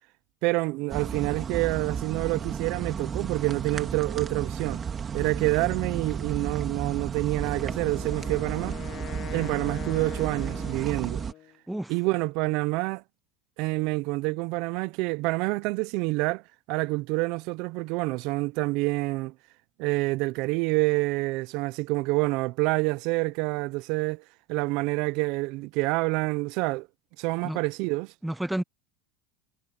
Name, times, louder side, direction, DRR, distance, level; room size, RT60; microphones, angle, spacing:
voice 1, 0.4-4.8 5.1-8.8 9.3-11.2 11.9-13.0 13.6-16.4 16.7-19.3 19.8-24.2 24.5-26.9 27.2-28.1, right 24 dB, 60° right, 0.7 m, -27 dB
sound 1, 0.9-11.3, right 7 dB, 25° right, 2.4 m, -33 dB
Wind instrument woodwind instrument, 7.3-11.6, left 13 dB, 45° left, 0.8 m, -43 dB
voice 2, 28.2-28.6, right 1 dB, 5° right, 0.9 m, -31 dB
supercardioid pair, 120°, 0 cm